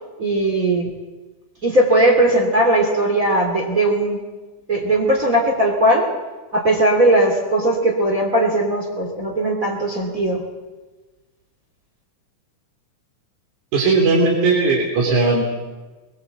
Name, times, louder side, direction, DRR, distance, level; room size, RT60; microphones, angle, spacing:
voice 1, 0.2-0.9 1.6-4.2 4.7-6.1 6.5-10.4, right 1 dB, 25° right, 0 dB, 3.1 m, -18 dB
voice 2, 13.7-15.4, right 3 dB, 60° right, -1 dB, 4.3 m, -17 dB
23.0 x 22.0 x 8.1 m, 1.2 s
omnidirectional pair, 3.8 m